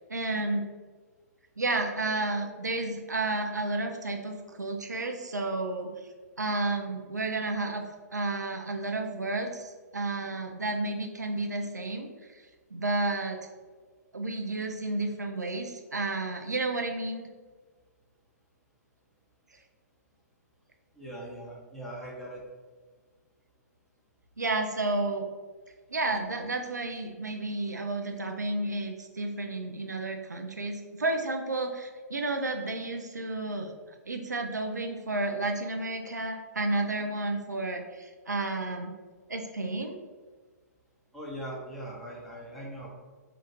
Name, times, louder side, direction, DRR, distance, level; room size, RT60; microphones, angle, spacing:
voice 1, 0.1-0.7 1.6-5.9 6.4-7.8 8.1-12.4 12.7-13.4 14.1-17.3 24.4-25.3 25.9-33.7 34.1-39.0 39.3-40.0, right 2 dB, 75° right, 3 dB, 0.5 m, -31 dB
voice 2, 21.0-22.4 41.1-42.9, right 1 dB, ahead, -6 dB, 0.9 m, -40 dB
3.8 x 2.4 x 4.5 m, 1.4 s
figure-of-eight pair, 120°, 9 cm